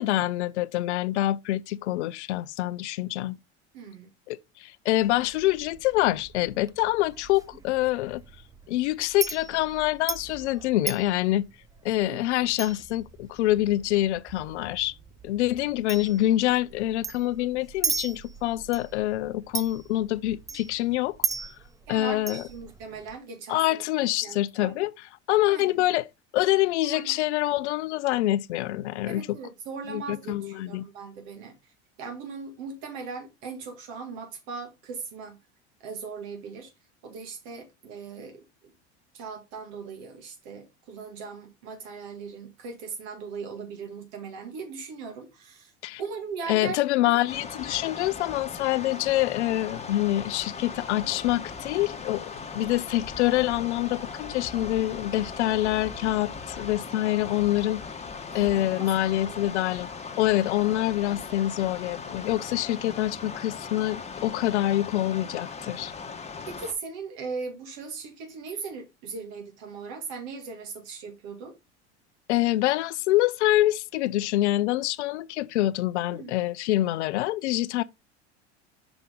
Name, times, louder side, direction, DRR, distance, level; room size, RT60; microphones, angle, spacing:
voice 1, 0.0-3.4 4.3-8.2 8.7-11.5 11.8-14.9 15.2-21.2 21.9-22.4 23.5-24.9 25.3-26.1 26.3-29.4 29.9-30.9 45.8-46.0 46.5-57.8 58.3-59.9 60.2-65.9 72.3-77.8, left 15 dB, 75° left, 0.5 m, -26 dB
voice 2, 3.7-4.1 12.0-12.2 21.9-23.8 24.2-24.7 25.5-25.8 26.8-27.1 29.1-31.5 32.0-35.4 35.8-36.7 37.0-38.4 39.1-45.7 46.0-46.8 58.3-59.5 66.5-71.5 76.0-76.3, right 5 dB, 65° right, 1.8 m, -39 dB
Chink clink, 5.0-23.2, right 4 dB, 10° right, 0.4 m, -38 dB
sound 1, 47.3-66.7, left 5 dB, 20° left, 1.2 m, -39 dB
5.9 x 5.6 x 3.6 m
hypercardioid pair, 85°, 34 cm